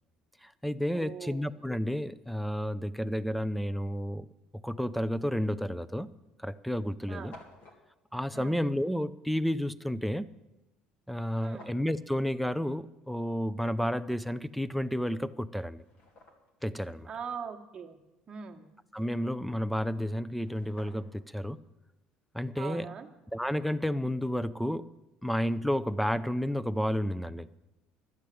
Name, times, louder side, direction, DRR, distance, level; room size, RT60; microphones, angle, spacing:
voice 1, 0.4-4.3 4.6-6.1 6.4-7.3 8.1-10.3 11.1-15.8 16.6-17.1 18.9-21.6 22.3-22.9 23.3-24.9 25.2-27.5, equal, ahead, 18 dB, 0.5 m, -31 dB
voice 2, 0.9-1.5 7.1-7.3 8.3-8.6 11.4-11.7 17.1-18.0 18.3-18.7 22.6-23.1, right 6 dB, 30° right, 3 dB, 1.4 m, -41 dB
sound 1, 5.5-5.7 6.4-6.5 6.6-6.7 6.9-7.8 11.3-11.9 14.8-14.9 15.5-16.6 20.0-20.1 20.3-21.3, left 2 dB, 50° left, 2.2 m, -54 dB
12.0 x 8.3 x 7.7 m, 1.0 s
supercardioid pair, 110°, 3 cm